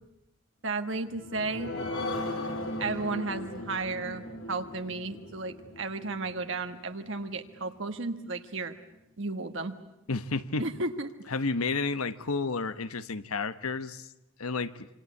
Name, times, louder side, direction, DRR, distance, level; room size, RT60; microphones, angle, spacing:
voice 1, 0.6-1.7 2.8-8.7 9.2-9.8 10.6-11.1, right 3 dB, 60° right, 7 dB, 1.4 m, -33 dB
sound 1, 0.9-8.0 8.5-8.6 8.9-9.0, left 2 dB, 75° left, 3.6 m, -38 dB
voice 2, 10.1-10.6 11.3-14.1 14.4-14.9, left 4 dB, 90° left, 13 dB, 1.1 m, -31 dB
26.5 x 26.0 x 8.5 m, 0.90 s
head